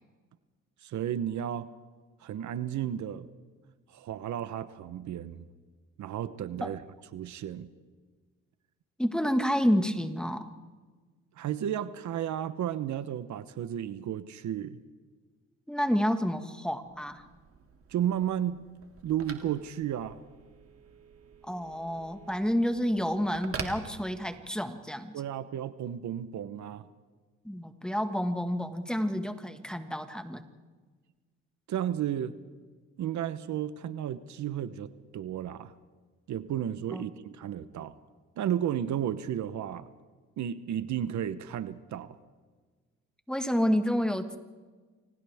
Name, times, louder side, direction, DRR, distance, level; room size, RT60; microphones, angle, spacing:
voice 1, 0.8-1.7 2.2-3.3 3.9-5.4 6.0-6.8 7.1-7.7 11.4-14.8 17.9-18.7 19.0-20.2 25.1-26.9 31.7-32.3 33.0-35.7 36.3-37.9 38.4-39.9 40.4-42.2, right 10 dB, 70° right, 13 dB, 1.0 m, -33 dB
voice 2, 9.0-10.5 15.7-17.2 21.5-25.1 27.5-30.4 36.9-37.1 43.3-44.4, equal, 5° left, 7 dB, 1.7 m, -29 dB
Telephone, 16.8-24.6, right 5 dB, 50° right, 2.5 m, -46 dB
30.0 x 26.0 x 3.6 m, 1.4 s
cardioid pair, 90°, 30 cm